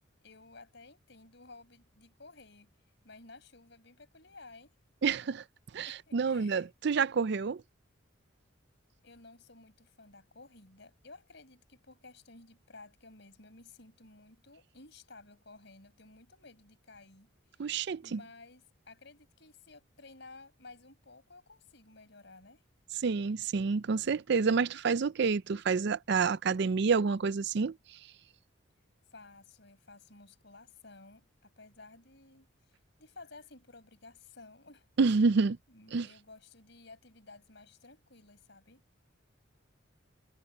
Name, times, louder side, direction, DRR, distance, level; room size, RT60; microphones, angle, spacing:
voice 1, 0.2-2.7 3.0-4.7 5.8-6.7 9.0-17.7 18.0-22.6 29.1-34.9 35.7-38.8, left 3 dB, 60° left, 5.5 m, -55 dB
voice 2, 5.0-5.4 5.7-7.6 17.6-18.2 23.0-27.8 35.0-35.6 35.9-36.1, right 5 dB, 55° right, 0.4 m, -28 dB
head